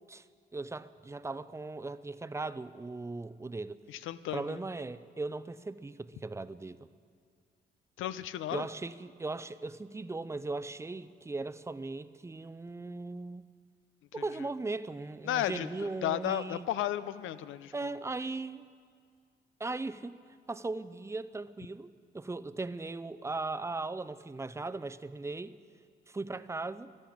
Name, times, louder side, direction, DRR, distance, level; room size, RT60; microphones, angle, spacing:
voice 1, 0.5-3.8 4.3-6.8 8.5-13.5 14.1-16.7 17.7-18.7 19.6-20.2 20.5-25.6 26.1-26.9, right 3 dB, 15° right, 15 dB, 0.5 m, -38 dB
voice 2, 3.9-4.6 8.0-8.6 15.3-17.7, left 12 dB, 80° left, 14 dB, 0.6 m, -34 dB
13.0 x 12.0 x 8.5 m, 2.1 s
cardioid pair, 90°, 20 cm